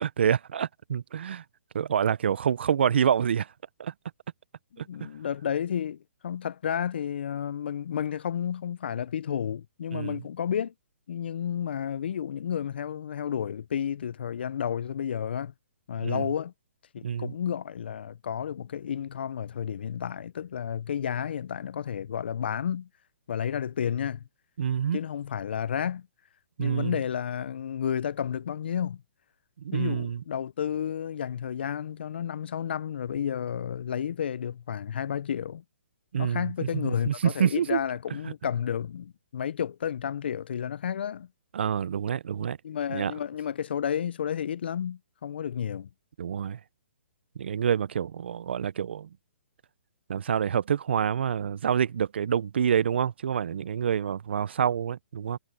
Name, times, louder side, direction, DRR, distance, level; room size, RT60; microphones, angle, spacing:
voice 1, 0.0-1.4 1.7-3.5 3.8-3.9 4.8-5.1 9.9-10.2 16.0-16.3 17.0-17.3 24.6-25.0 26.6-27.0 29.6-30.2 36.1-37.8 41.5-42.6 42.9-43.1 46.2-46.6 47.4-49.1 50.1-55.4, right 8 dB, 55° right, 0.4 m, -27 dB
voice 2, 4.7-10.7 11.1-15.5 15.9-16.5 16.9-22.9 23.3-24.2 24.9-26.1 26.6-29.0 29.7-35.6 36.2-41.3 42.6-45.9, left 8 dB, 55° left, 0.4 m, -31 dB
hypercardioid pair, 170°, 7 cm